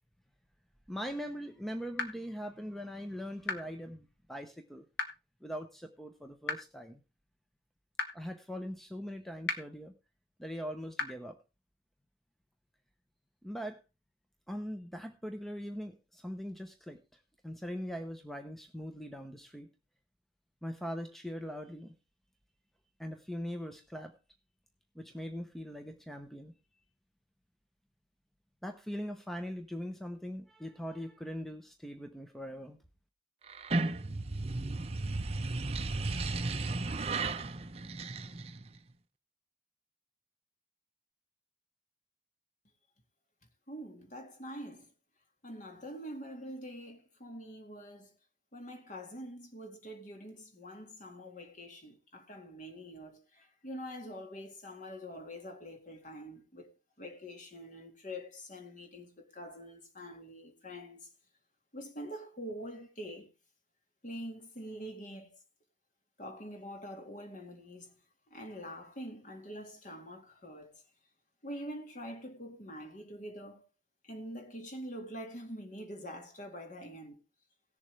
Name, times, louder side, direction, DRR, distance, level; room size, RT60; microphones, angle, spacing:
voice 1, 0.9-4.9 5.4-7.0 8.1-9.9 10.4-11.4 13.4-13.8 14.5-17.0 17.4-19.7 20.6-21.9 23.0-24.1 25.0-26.5 28.6-32.8, equal, ahead, 0.8 m, -41 dB
sound 1, 2.0-2.1 3.5-3.6 5.0-5.1 6.5-6.6 8.0-8.1 9.5-9.6 11.0-11.1, left 4 dB, 70° left, 1.5 m, -32 dB
sound 2, 33.5-38.8, right 3 dB, 35° right, 0.7 m, -34 dB
voice 2, 43.7-44.9 45.4-48.1 48.5-56.7 57.0-61.1 61.7-63.3 64.0-65.4 66.2-67.9 68.3-70.8 71.4-73.7 74.0-77.2, equal, 40° left, 2.0 m, -45 dB
17.5 x 7.2 x 3.3 m
head